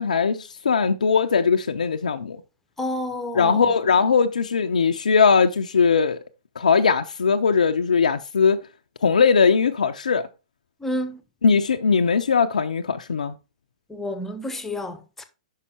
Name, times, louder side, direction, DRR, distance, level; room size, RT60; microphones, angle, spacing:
voice 1, 0.0-2.4 3.4-6.2 6.6-8.6 9.0-10.3 11.4-13.3, left 5 dB, 80° left, 0.4 m, -20 dB
voice 2, 2.8-3.7 10.8-11.2 13.9-15.2, left 1 dB, 10° left, 0.8 m, -30 dB
5.6 x 5.5 x 4.2 m
hypercardioid pair, 115°, 4 cm